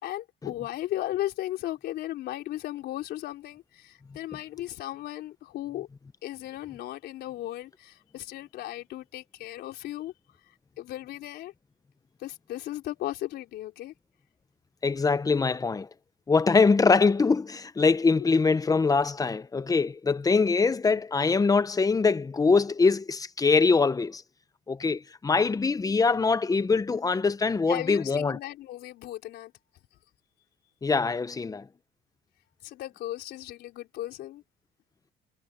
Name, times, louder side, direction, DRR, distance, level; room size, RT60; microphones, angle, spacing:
voice 1, 0.0-5.9 6.2-10.1 10.8-11.5 12.2-13.9 27.7-29.5 32.6-34.4, left 14 dB, 75° left, 3.9 m, -36 dB
voice 2, 14.8-15.9 16.3-24.2 24.7-28.4 30.8-31.7, left 4 dB, 20° left, 1.0 m, -23 dB
cardioid pair, 110°, 17 cm